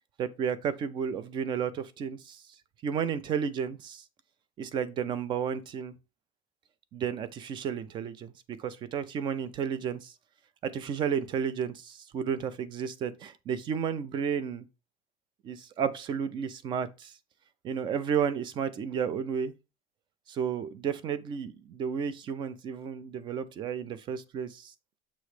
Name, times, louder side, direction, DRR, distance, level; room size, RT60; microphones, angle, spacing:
voice 1, 0.2-2.4 2.8-4.0 4.6-5.9 6.9-8.3 8.6-10.1 10.6-14.6 15.4-17.1 17.6-19.5 20.3-24.7, right 7 dB, 30° right, 0.5 m, -32 dB
7.2 x 3.1 x 4.8 m
cardioid pair, 180°, 16 cm